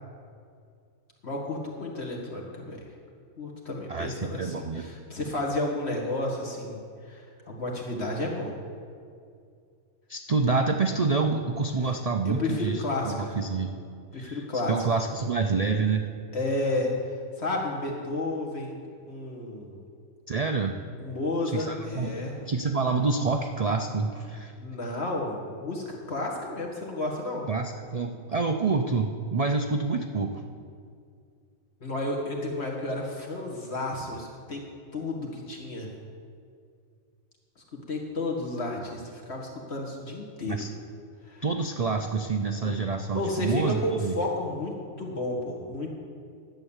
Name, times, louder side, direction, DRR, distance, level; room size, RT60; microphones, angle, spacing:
voice 1, 1.2-2.8 3.4-8.5 11.8-11.9 12.3-13.4 14.1-14.8 16.3-19.8 21.0-22.5 24.6-27.4 31.8-34.6 34.9-35.9 37.9-40.7 41.2-41.4 42.6-42.8 43.1-45.9, left 2 dB, 50° left, -1 dB, 2.1 m, -32 dB
voice 2, 3.9-4.8 10.1-13.7 14.1-16.1 20.3-20.8 21.5-24.5 27.5-30.4 40.5-40.7 41.4-44.2, right 4 dB, 60° right, 5 dB, 0.4 m, -27 dB
11.5 x 8.3 x 7.3 m, 2.3 s
omnidirectional pair, 1.5 m